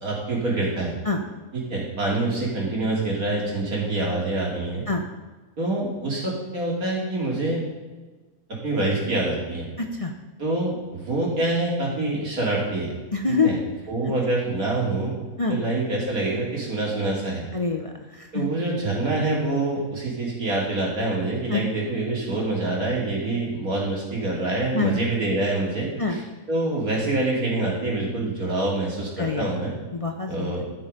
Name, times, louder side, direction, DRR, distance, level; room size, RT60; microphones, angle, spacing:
voice 1, 0.0-0.9 1.5-4.8 5.6-7.6 8.5-9.7 10.4-12.9 13.3-13.6 13.9-15.1 15.5-17.4 18.3-26.2 26.5-29.7 30.3-30.7, right 2 dB, 90° right, -3 dB, 3.2 m, -26 dB
voice 2, 13.1-13.5 15.4-15.6 17.5-18.5 21.5-21.6 24.7-25.0 26.0-26.2 29.2-29.6 29.9-30.6, left 4 dB, 30° left, 3 dB, 0.7 m, -25 dB
13.5 x 5.6 x 5.2 m, 1.3 s
omnidirectional pair, 1.5 m